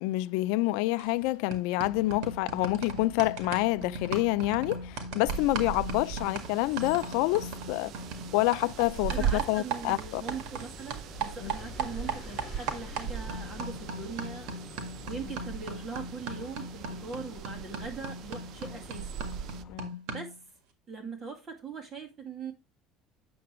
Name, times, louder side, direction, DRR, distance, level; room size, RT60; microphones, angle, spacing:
voice 1, 0.0-7.9 8.3-10.2 11.4-11.5 19.7-19.9, left 19 dB, 80° left, 0.5 m, -28 dB
sound 1, 1.0-1.2 1.5-10.7 10.9-20.4, right 4 dB, 75° right, 1.8 m, -38 dB
sound 2, 1.8-19.8, left 6 dB, 35° left, 1.5 m, -49 dB
sound 3, 5.3-19.6, right 8 dB, 55° right, 0.6 m, -40 dB
voice 2, 9.1-14.5 15.0-19.2 20.1-20.3 20.9-22.5, right 5 dB, 30° right, 2.1 m, -41 dB
8.7 x 6.8 x 3.1 m
cardioid pair, 135°, 0 cm